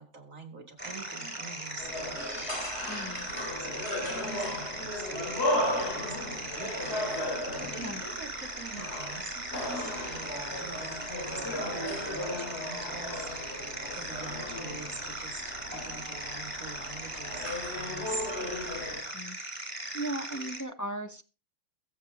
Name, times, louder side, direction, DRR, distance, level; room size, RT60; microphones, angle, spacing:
voice 1, 0.0-2.9 3.6-18.3, right 4 dB, 45° right, 5 dB, 2.4 m, -46 dB
sound 1, 0.8-20.6, right 1 dB, 15° right, 2.8 m, -39 dB
sound 2, 1.8-19.0, left 1 dB, 35° left, 3.5 m, -36 dB
voice 2, 2.9-3.3 7.8-8.0 19.1-19.4 19.9-21.2, right 1 dB, 20° left, 5 dB, 0.5 m, -37 dB
22.0 x 7.8 x 3.5 m, 0.34 s
omnidirectional pair, 2.0 m